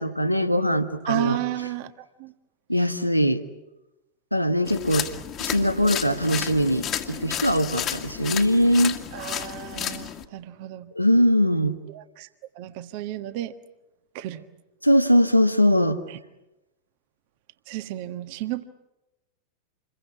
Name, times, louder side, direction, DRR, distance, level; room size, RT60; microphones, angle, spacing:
voice 1, 0.0-1.4 2.7-3.4 4.3-5.1 5.4-8.9 10.9-11.8 14.8-16.0, equal, 90° left, 8 dB, 1.5 m, -21 dB
voice 2, 1.1-2.3 5.6-5.7 9.1-10.9 11.9-12.3 12.5-13.5 14.1-14.4 16.1-16.2 17.7-18.6, right 14 dB, 45° right, 10 dB, 1.4 m, -33 dB
sound 1, 4.7-10.2, left 10 dB, 35° left, 2.0 m, -32 dB
27.5 x 22.5 x 8.5 m, 0.97 s
figure-of-eight pair, 90°, 0 cm